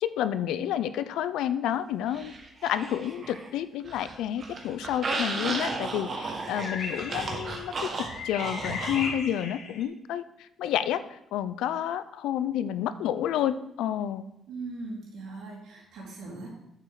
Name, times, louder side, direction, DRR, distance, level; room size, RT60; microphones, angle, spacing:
voice 1, 0.0-2.3 2.6-14.2, left 10 dB, 90° left, 13 dB, 0.5 m, -30 dB
sound 1, 2.1-3.5 3.8-9.1, right 3 dB, 50° right, 1.7 m, -34 dB
sound 2, 6.5-9.8, left 4 dB, 75° left, 1.2 m, -37 dB
voice 2, 14.5-16.5, right 3 dB, 85° right, -4 dB, 3.8 m, -39 dB
9.1 x 7.5 x 3.9 m, 0.84 s
cardioid pair, 90°, 0 cm